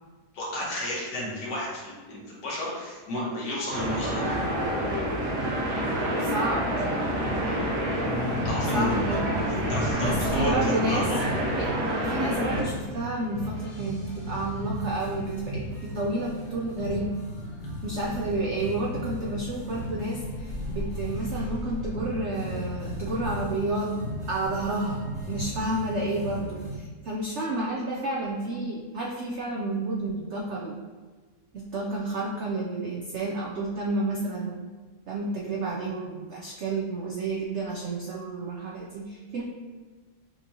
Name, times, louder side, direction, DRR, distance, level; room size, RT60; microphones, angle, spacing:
voice 1, 0.3-4.3 8.4-9.2 9.7-11.2, left 1 dB, 80° left, -5 dB, 1.7 m, -31 dB
sound 1, 3.7-12.6, equal, 55° right, 1.1 m, -28 dB
voice 2, 6.2-6.9 8.7-9.2 10.0-11.1 11.6-11.7 12.0-17.2 17.8-23.9 24.3-30.7 31.5-34.7 35.1-39.4, right 2 dB, 75° right, -2 dB, 0.6 m, -30 dB
sound 2, 7.1-26.8, left 1 dB, 50° left, 1.3 m, -36 dB
5.9 x 2.9 x 2.7 m, 1.4 s
omnidirectional pair, 1.8 m